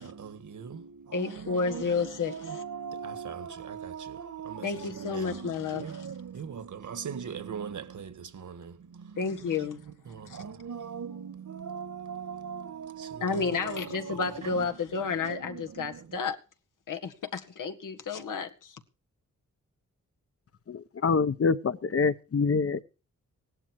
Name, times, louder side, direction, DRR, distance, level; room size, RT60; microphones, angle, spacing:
voice 1, 0.0-9.6 9.9-14.7 15.0-16.2, right 6 dB, 70° right, 1.8 m, -40 dB
voice 2, 1.1-2.6 4.6-5.9 9.2-9.8 10.3-10.4 13.2-16.4 16.9-18.8, left 5 dB, 90° left, 1.9 m, -31 dB
voice 3, 20.7-22.8, left 5 dB, 50° left, 1.0 m, -26 dB
17.5 x 11.5 x 4.8 m
cardioid pair, 85°, 31 cm